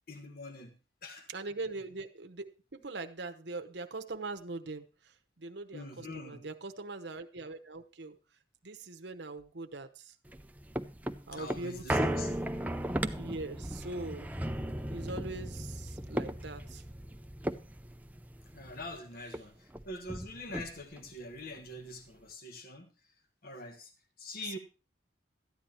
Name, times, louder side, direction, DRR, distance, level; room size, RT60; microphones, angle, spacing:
voice 1, 0.1-1.3 5.7-6.5 11.3-12.3 18.5-22.9 23.4-23.9 24.2-24.6, left 2 dB, 50° left, 6 dB, 1.5 m, -44 dB
voice 2, 1.3-8.2 8.6-10.1 11.3-12.4 13.2-14.3 14.9-16.8, right 3 dB, 65° right, 7 dB, 1.0 m, -42 dB
sound 1, 10.3-19.0 19.3-19.4 19.7-21.1 21.6-21.7, right 1 dB, 10° right, 0.5 m, -36 dB
13.5 x 9.6 x 4.4 m, 0.34 s
head